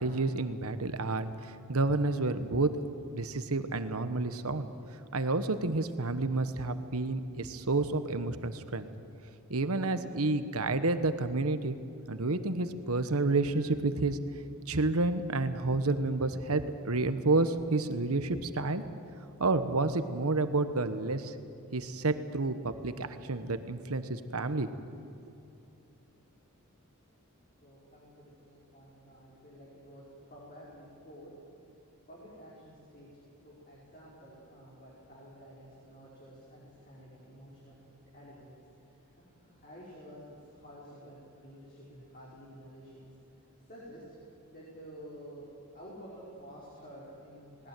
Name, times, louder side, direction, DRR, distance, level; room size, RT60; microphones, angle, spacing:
voice 1, 0.0-2.8 3.1-4.7 5.1-8.9 9.5-11.8 12.1-14.2 14.7-18.8 19.4-21.3 21.7-24.7, right 3 dB, 70° right, 10 dB, 1.2 m, -30 dB
voice 2, 27.6-31.3 32.1-33.1 33.4-43.1 43.7-44.0 44.5-45.5 45.7-47.7, equal, 40° left, -7 dB, 5.2 m, -51 dB
20.0 x 19.0 x 9.3 m, 2.8 s
head